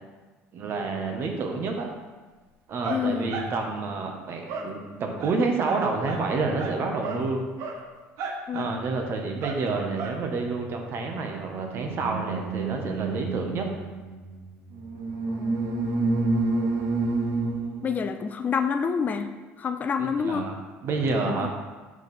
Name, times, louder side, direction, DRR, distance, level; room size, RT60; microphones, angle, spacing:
voice 1, 0.5-1.9 2.7-7.4 8.5-13.7 20.0-21.5, right 3 dB, 50° right, 3 dB, 1.1 m, -29 dB
sound 1, 2.8-3.5 4.5-4.7 5.2-5.4 5.7-6.2 6.6-6.8 7.0-7.3 7.6-7.8 8.2-8.7 9.4-9.6 10.0-10.2 11.2-17.9, right 3 dB, 70° right, 0.9 m, -30 dB
voice 2, 2.9-3.3 8.5-8.9 15.3-15.6 17.8-20.5 21.2-21.5, left 6 dB, 30° left, 7 dB, 0.4 m, -28 dB
6.3 x 4.8 x 4.2 m, 1.3 s
supercardioid pair, 100°, 5 cm